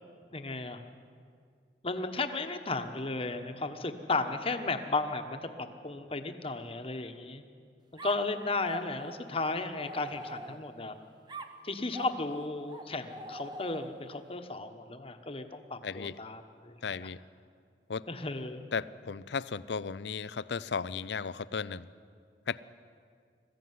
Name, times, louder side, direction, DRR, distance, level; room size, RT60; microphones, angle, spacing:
voice 1, 0.3-0.8 1.8-7.4 8.0-10.9 11.6-17.1 18.1-18.6, left 3 dB, 35° left, 7 dB, 1.2 m, -34 dB
sound 1, 8.0-10.8 11.3-14.2, right 1 dB, 25° right, 1.0 m, -44 dB
voice 2, 15.8-16.2 16.8-17.2 17.9-18.0 18.7-21.9 22.5-22.6, left 5 dB, 75° left, 18 dB, 0.5 m, -35 dB
21.0 x 15.0 x 9.5 m, 2.2 s
head